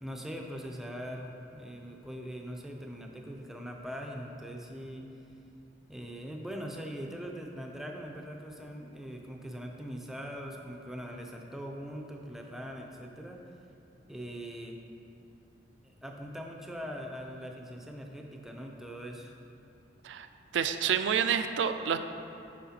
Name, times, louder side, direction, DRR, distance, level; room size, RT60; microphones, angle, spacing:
voice 1, 0.0-5.1 5.9-13.4 14.1-14.8 15.8-19.3, equal, ahead, 1 dB, 0.5 m, -41 dB
voice 2, 20.5-22.0, right 7 dB, 70° right, 9 dB, 0.3 m, -28 dB
9.3 x 4.9 x 2.8 m, 2.7 s
head